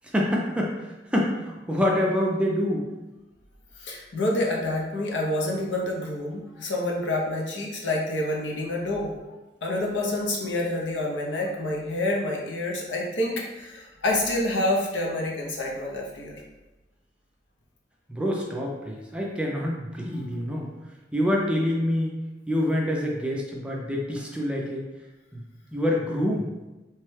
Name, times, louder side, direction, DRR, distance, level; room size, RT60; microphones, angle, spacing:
voice 1, 0.1-2.9 18.1-20.7 21.1-22.2 22.5-24.8 25.3-25.4 25.7-26.5, left 1 dB, 5° right, -2 dB, 0.4 m, -26 dB
voice 2, 3.8-9.1 9.6-16.4, left 1 dB, 80° left, -1 dB, 0.7 m, -28 dB
3.1 x 2.2 x 3.2 m, 1.1 s
head